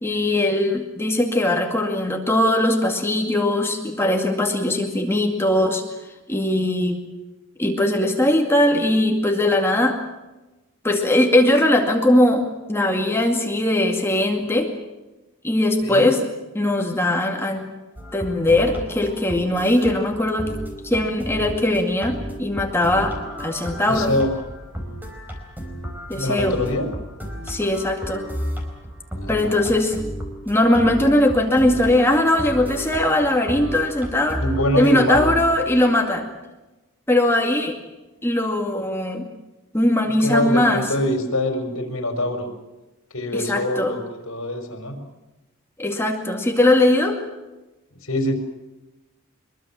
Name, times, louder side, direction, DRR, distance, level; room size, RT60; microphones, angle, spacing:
voice 1, 0.0-5.8 6.3-7.0 7.6-10.0 10.8-14.7 15.4-16.2 16.5-17.6 18.1-20.5 20.8-24.1 26.1-26.6 27.5-28.2 29.3-30.0 30.5-34.4 34.8-36.2 37.1-37.8 38.2-39.3 39.7-40.9 43.3-43.9 45.8-47.2, left 1 dB, 10° left, 2 dB, 2.2 m, -20 dB
sound 1, 18.0-35.7, equal, 10° right, 4.4 m, -33 dB
voice 2, 23.9-24.3 26.1-26.9 29.2-29.7 34.4-35.3 40.0-42.5 43.1-45.0 48.0-48.4, left 1 dB, 75° left, 6 dB, 5.1 m, -24 dB
24.0 x 22.5 x 7.5 m, 1.1 s
head